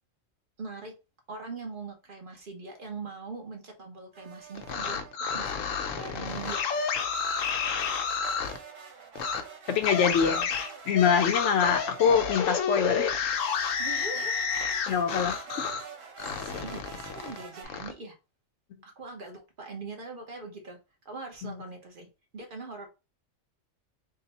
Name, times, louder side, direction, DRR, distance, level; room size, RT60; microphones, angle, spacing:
voice 1, 0.6-0.9 1.3-5.6 5.9-6.6 9.9-10.4 13.8-15.0 16.2-18.2 18.8-20.8 21.0-22.9, right 3 dB, 45° right, 1.1 m, -42 dB
sound 1, 4.1-5.2 6.2-12.6 13.3-17.6, right 6 dB, 90° right, 1.4 m, -45 dB
sound 2, 4.5-8.6 9.1-9.4 9.8-15.9 16.2-17.9, left 6 dB, 90° left, 1.1 m, -30 dB
voice 2, 9.7-10.4 10.9-13.1 14.9-15.7 21.4-21.6, left 7 dB, 70° left, 0.9 m, -24 dB
3.7 x 2.2 x 4.0 m
omnidirectional pair, 1.3 m